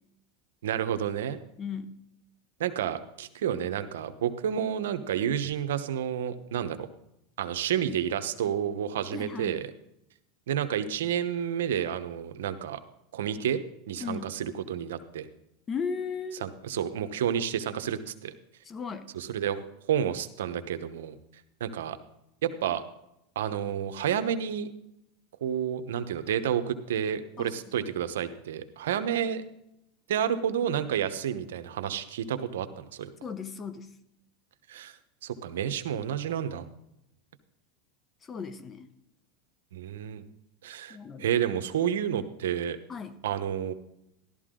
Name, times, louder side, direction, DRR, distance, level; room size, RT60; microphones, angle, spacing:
voice 1, 0.6-1.4 2.6-6.9 7.4-9.7 10.5-12.8 13.1-13.6 13.9-15.3 16.3-18.3 19.1-21.2 21.6-22.0 22.4-22.8 23.3-24.7 25.4-29.4 30.1-33.1 34.7-35.0 35.2-36.6 39.7-40.2 40.6-42.8 43.2-43.7, right 9 dB, 85° right, 10 dB, 0.9 m, -30 dB
voice 2, 1.6-2.0 9.1-9.6 14.0-14.3 15.7-16.4 18.6-19.1 27.4-27.5 27.8-27.9 33.2-33.9 38.3-38.9 40.9-41.3 42.9-43.2, left 5 dB, 25° left, 13 dB, 0.9 m, -36 dB
14.0 x 12.0 x 3.8 m, 0.83 s
supercardioid pair, 125°, 0 cm